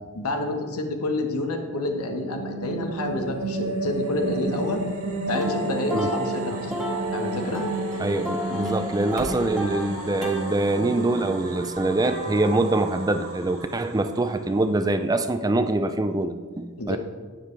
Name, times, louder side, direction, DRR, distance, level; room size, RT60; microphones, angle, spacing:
voice 1, 0.1-4.8 5.3-6.7 7.1-7.7 16.8-17.0, left 2 dB, 85° left, 4 dB, 1.3 m, -29 dB
sound 1, 1.6-14.8, right 2 dB, 75° right, 2.1 m, -33 dB
sound 2, 5.3-10.5 11.2-12.6, right 1 dB, ahead, 1.7 m, -32 dB
voice 2, 8.0-17.0, right 2 dB, 15° right, 9 dB, 0.4 m, -24 dB
11.5 x 9.3 x 3.3 m, 1.5 s
head